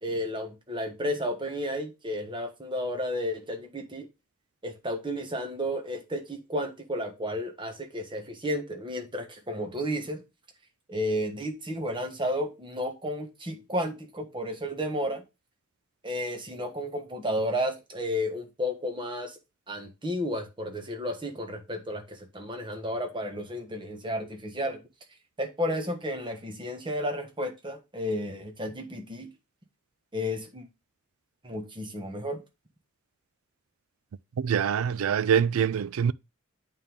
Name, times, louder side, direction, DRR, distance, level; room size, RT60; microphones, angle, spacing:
voice 1, 0.0-4.1 4.6-10.2 10.9-15.2 16.0-19.4 19.7-24.8 25.4-29.3 30.1-30.7 31.4-32.4, equal, 25° right, 1.3 m, -32 dB
voice 2, 34.4-36.1, right 7 dB, 80° right, 0.4 m, -24 dB
8.8 x 3.5 x 3.6 m
head